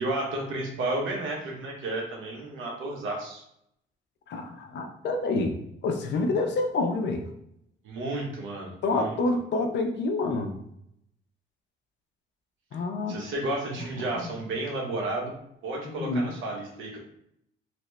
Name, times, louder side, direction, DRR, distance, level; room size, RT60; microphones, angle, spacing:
voice 1, 0.0-3.4 7.8-9.1 13.1-15.3 15.6-17.0, right 2 dB, 85° right, 0 dB, 1.0 m, -32 dB
voice 2, 4.3-5.5 5.8-7.2 8.8-10.6 12.7-13.2 14.2-14.3 15.8-16.3, left 3 dB, 65° left, 5 dB, 0.6 m, -27 dB
2.9 x 2.6 x 3.2 m, 0.74 s
cardioid pair, 90°, 20 cm